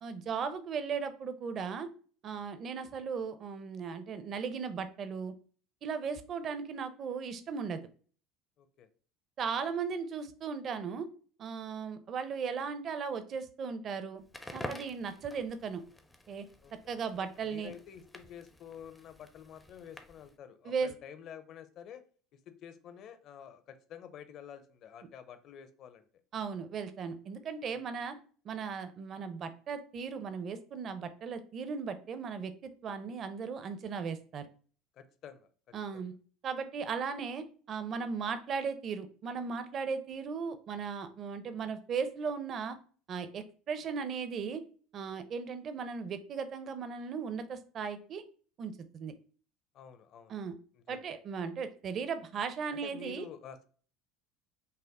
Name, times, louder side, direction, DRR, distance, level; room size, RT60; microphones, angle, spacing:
voice 1, 0.0-1.9 2.2-5.3 5.8-7.8 9.4-11.1 11.4-14.2 14.5-15.8 16.3-16.4 16.9-17.7 20.6-20.9 26.3-28.2 28.4-34.4 35.7-36.1 36.4-42.8 43.1-44.6 44.9-48.2 48.6-49.1 50.3-50.6 50.9-53.3, right 5 dB, 35° right, 11 dB, 0.6 m, -37 dB
voice 2, 8.6-8.9 15.0-15.1 16.6-16.7 17.2-22.0 22.3-26.1 27.7-27.8 34.9-36.0 49.7-50.4 50.7-51.0 52.7-53.7, left 8 dB, 45° left, 10 dB, 0.6 m, -49 dB
Crackle, 14.2-20.4, left 1 dB, 5° left, 0.5 m, -48 dB
5.5 x 2.0 x 3.6 m, 0.41 s
cardioid pair, 135°, 0 cm